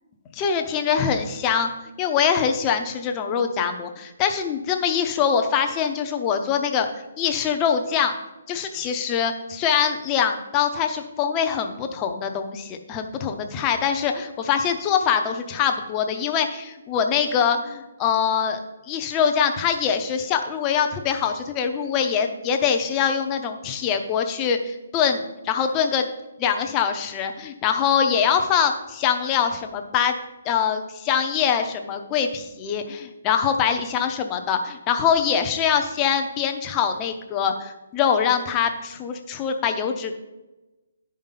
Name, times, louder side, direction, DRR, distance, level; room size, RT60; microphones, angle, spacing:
voice 1, 0.3-1.7 2.0-6.9 7.2-8.1 8.5-18.6 18.9-26.1 26.4-30.2 30.4-40.2, left 7 dB, 15° left, 5 dB, 0.7 m, -23 dB
10.5 x 5.3 x 5.7 m, 1.0 s
hypercardioid pair, 175°, 0 cm